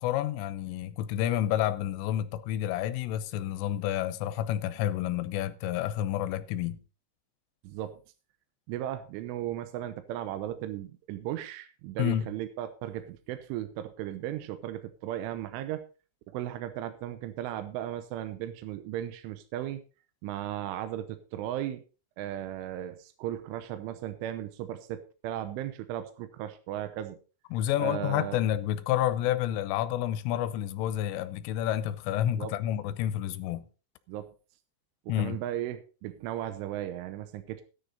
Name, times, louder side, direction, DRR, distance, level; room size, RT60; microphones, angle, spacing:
voice 1, 0.0-6.8 12.0-12.3 27.5-33.7 35.1-35.4, left 12 dB, 80° left, 3.3 m, -29 dB
voice 2, 7.6-8.0 8.7-15.8 16.3-19.8 20.2-21.8 22.2-27.2 27.8-28.4 32.2-32.5 34.1-34.3 35.2-37.6, right 12 dB, 80° right, 3.1 m, -36 dB
14.0 x 9.9 x 4.0 m
omnidirectional pair, 6.0 m